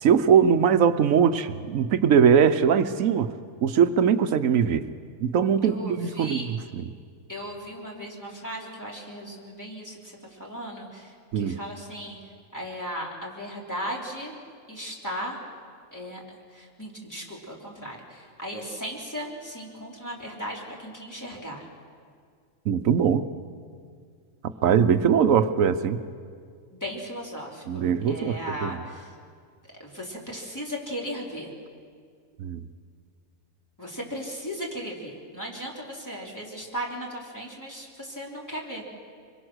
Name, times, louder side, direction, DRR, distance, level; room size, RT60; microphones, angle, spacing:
voice 1, 0.0-3.3 3.6-4.9 5.2-6.9 11.3-11.6 22.7-23.3 24.6-26.0 27.7-28.9 32.4-32.6, right 7 dB, 85° right, 11 dB, 1.2 m, -21 dB
voice 2, 5.6-6.5 7.3-10.0 10.3-12.2 12.5-14.4 14.7-15.4 15.9-16.2 16.5-21.6 26.7-29.1 29.8-31.5 33.8-38.8, equal, 15° left, -3 dB, 3.6 m, -36 dB
25.0 x 22.5 x 6.3 m, 2.1 s
omnidirectional pair, 1.4 m